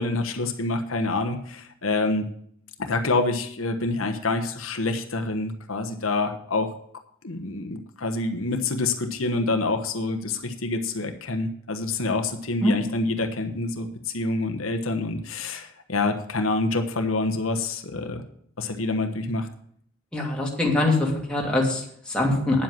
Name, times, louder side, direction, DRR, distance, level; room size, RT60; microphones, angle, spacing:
voice 1, 0.0-2.2 2.8-6.7 7.2-18.2 18.6-19.5, left 2 dB, 85° left, 5 dB, 1.2 m, -27 dB
voice 2, 20.1-22.6, left 2 dB, 5° left, -2 dB, 2.8 m, -23 dB
9.9 x 7.8 x 7.5 m, 0.65 s
head